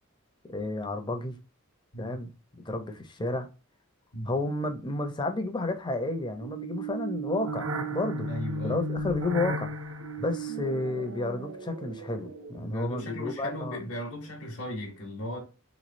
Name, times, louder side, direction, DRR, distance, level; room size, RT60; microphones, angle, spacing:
voice 1, 0.4-1.4 2.0-3.5 4.3-8.3 8.6-13.8, left 2 dB, 20° left, 0.5 m, -32 dB
sound 1, 6.4-12.8, right 2 dB, 65° right, 0.6 m, -35 dB
voice 2, 8.2-8.8 12.6-15.4, equal, 65° left, 0.9 m, -36 dB
3.5 x 3.1 x 2.5 m
head